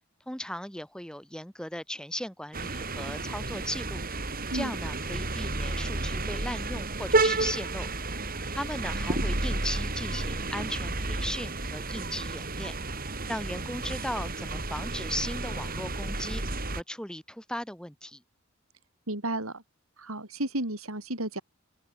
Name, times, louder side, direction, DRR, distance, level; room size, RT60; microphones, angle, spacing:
voice 1, 0.3-4.0 4.5-7.9 8.5-12.7 13.3-16.4 16.8-18.2, left 1 dB, 5° left, 6.3 m, -37 dB
sound 1, 2.5-16.8, right 2 dB, 45° right, 7.1 m, -31 dB
voice 2, 19.1-19.6 20.0-21.4, right 1 dB, 80° right, 7.2 m, -32 dB
head